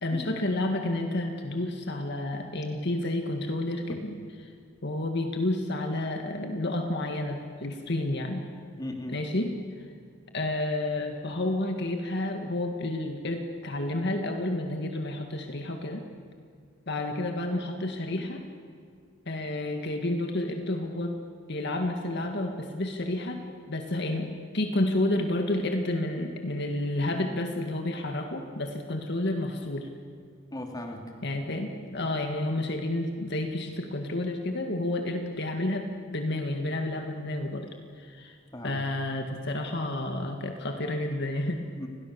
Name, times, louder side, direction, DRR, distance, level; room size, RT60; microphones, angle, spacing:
voice 1, 0.0-4.2 4.8-8.5 9.1-9.5 10.3-16.1 16.9-18.5 19.3-21.2 21.5-23.4 23.7-29.9 31.2-38.4 38.6-41.6, left 1 dB, 55° left, 4 dB, 1.9 m, -30 dB
voice 2, 8.8-9.2 30.5-31.1 38.5-38.8 41.8-41.9, left 1 dB, 20° left, 2 dB, 3.2 m, -37 dB
30.0 x 22.0 x 7.0 m, 2.2 s
head